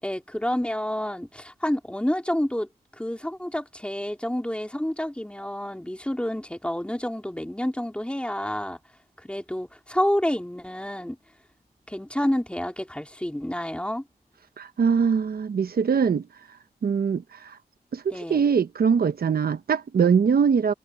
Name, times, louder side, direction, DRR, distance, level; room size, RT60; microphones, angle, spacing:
voice 1, 0.0-2.7 3.0-8.8 9.2-11.2 11.9-14.0 18.1-18.4, left 1 dB, 5° left, 3.6 m, -29 dB
voice 2, 14.6-16.3 16.8-17.6 17.9-20.7, right 6 dB, 80° right, 1.0 m, -22 dB
wide cardioid pair, 80°, 15 cm